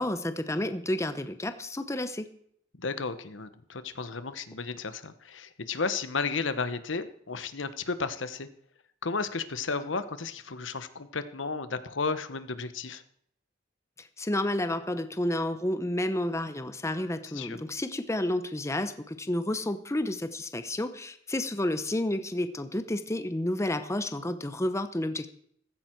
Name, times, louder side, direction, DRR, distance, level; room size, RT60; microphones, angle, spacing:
voice 1, 0.0-2.3 14.0-25.3, left 1 dB, 15° left, 10 dB, 0.8 m, -30 dB
voice 2, 2.7-8.5 9.0-13.0 17.3-17.6, left 4 dB, 80° left, 12 dB, 1.1 m, -33 dB
15.0 x 15.0 x 4.6 m, 0.67 s
head